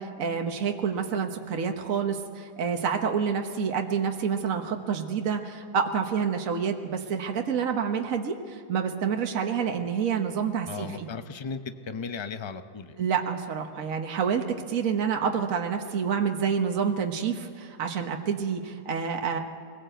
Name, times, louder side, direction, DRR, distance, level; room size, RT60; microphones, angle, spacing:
voice 1, 0.0-11.1 13.0-19.4, right 6 dB, 55° right, 4 dB, 1.6 m, -28 dB
voice 2, 10.7-13.0, left 5 dB, 40° left, 9 dB, 0.4 m, -36 dB
22.5 x 17.0 x 8.0 m, 2.4 s
omnidirectional pair, 1.7 m